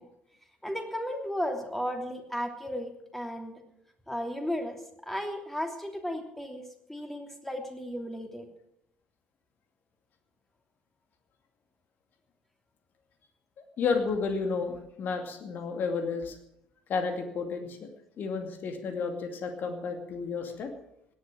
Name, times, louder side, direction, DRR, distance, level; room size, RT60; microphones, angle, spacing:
voice 1, 0.6-3.6 4.1-4.8 5.0-6.6 6.9-8.5, equal, 5° left, 3 dB, 3.0 m, -34 dB
voice 2, 13.8-16.4 16.9-17.9 18.2-20.7, left 5 dB, 45° left, 6 dB, 2.4 m, -31 dB
17.5 x 11.0 x 6.2 m, 0.80 s
figure-of-eight pair, 50°, 4 cm